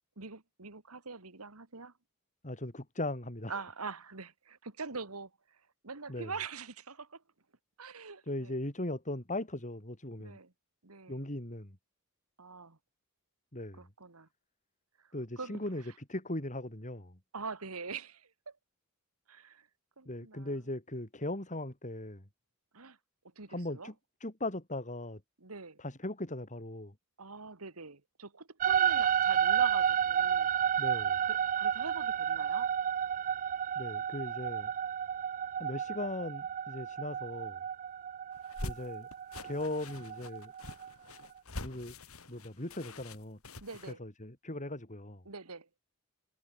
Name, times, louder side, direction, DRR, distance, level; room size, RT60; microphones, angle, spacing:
voice 1, 0.2-1.9 3.5-7.2 7.8-8.5 10.2-10.5 10.8-11.3 12.4-12.8 13.8-14.3 15.0-15.6 17.3-18.6 19.3-19.7 20.0-20.6 22.7-23.0 23.4-23.9 25.4-25.8 27.2-30.5 31.2-32.7 43.6-44.0 45.3-45.7, right 4 dB, 85° right, 2.2 m, -44 dB
voice 2, 2.4-3.6 6.1-6.3 8.3-10.4 11.1-11.8 13.5-13.8 15.1-15.8 16.1-17.2 20.0-22.2 23.5-23.9 24.2-25.2 25.8-26.9 30.8-31.2 33.7-34.7 35.6-37.6 38.6-39.1 39.4-40.5 41.6-42.0 42.3-43.4 43.8-45.2, left 1 dB, 35° left, 4.8 m, -38 dB
sound 1, 28.6-40.9, right 8 dB, 35° right, 0.3 m, -31 dB
sound 2, 38.3-43.9, left 2 dB, 75° left, 4.7 m, -45 dB
head